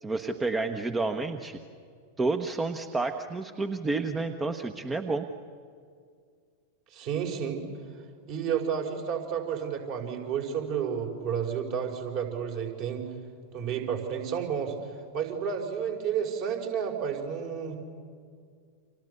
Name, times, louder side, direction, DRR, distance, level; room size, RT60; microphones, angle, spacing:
voice 1, 0.0-1.6 2.2-5.3, right 3 dB, 15° right, 8 dB, 1.2 m, -30 dB
voice 2, 6.9-7.6 8.3-13.1 13.5-14.7 15.1-17.8, right 7 dB, 45° right, 2 dB, 5.0 m, -31 dB
30.0 x 27.0 x 6.9 m, 2.2 s
figure-of-eight pair, 90°, 0 cm